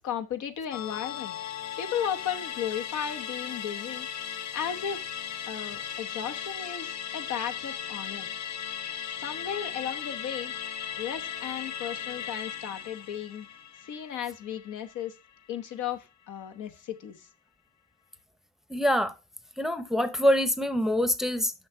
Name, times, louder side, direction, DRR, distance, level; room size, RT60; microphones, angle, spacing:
voice 1, 0.0-1.3 1.8-4.1 4.5-5.1 5.5-8.3 9.2-10.5 11.0-13.5 13.8-15.1 15.5-17.3, left 9 dB, 80° left, 1.1 m, -35 dB
Musical instrument, 0.7-15.4 15.7-15.8, left 8 dB, 65° left, 0.8 m, -37 dB
voice 2, 18.7-19.1 19.6-21.5, equal, ahead, 0.7 m, -25 dB
6.5 x 5.7 x 4.4 m
cardioid pair, 90°, 30 cm